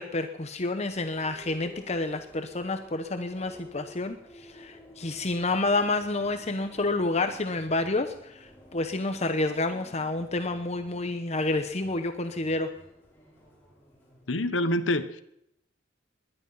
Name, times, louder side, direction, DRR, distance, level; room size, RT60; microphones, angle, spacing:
voice 1, 0.0-12.7, left 2 dB, 35° left, 7 dB, 0.9 m, -29 dB
sound 1, 0.9-14.5, equal, 10° left, 5.5 m, -52 dB
voice 2, 14.3-15.2, left 1 dB, 85° left, 11 dB, 1.2 m, -26 dB
20.0 x 11.0 x 5.7 m, 0.78 s
head